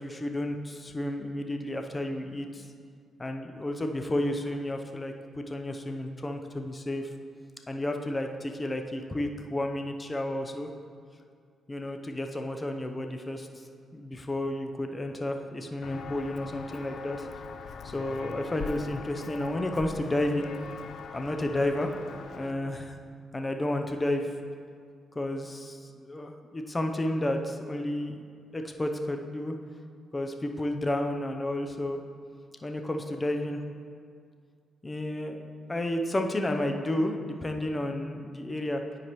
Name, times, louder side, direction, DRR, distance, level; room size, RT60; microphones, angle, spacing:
voice 1, 0.0-2.7 3.2-7.1 7.7-10.7 11.7-13.5 13.9-17.3 17.8-20.5 21.1-21.9 22.3-23.0 23.3-24.3 25.1-28.2 28.5-29.6 30.1-32.0 32.6-33.6 34.8-38.8, left 1 dB, 20° left, 4 dB, 0.6 m, -31 dB
Walk footsteps, 15.8-22.5, left 5 dB, 65° left, 0.4 m, -41 dB
10.0 x 4.7 x 3.1 m, 2.2 s
cardioid pair, 75°, 0 cm